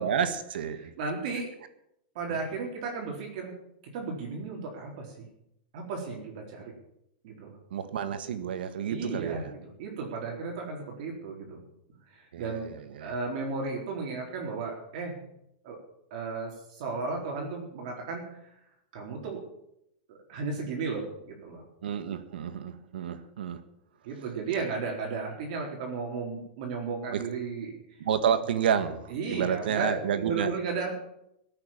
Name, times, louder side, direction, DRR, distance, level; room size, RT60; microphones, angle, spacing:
voice 1, 0.0-0.9 2.3-2.4 7.7-9.5 12.3-13.1 21.8-23.6 27.1-27.3 28.0-30.5, right 8 dB, 85° right, 11 dB, 1.7 m, -30 dB
voice 2, 0.8-1.5 2.1-3.5 3.9-5.3 5.7-6.7 7.2-7.6 8.9-11.6 12.1-12.7 13.0-15.2 15.6-15.8 16.1-18.4 18.9-19.5 20.1-21.6 24.0-27.7 29.1-30.9, right 4 dB, 50° right, 0 dB, 4.1 m, -34 dB
18.0 x 8.9 x 7.5 m, 0.79 s
supercardioid pair, 170°, 5 cm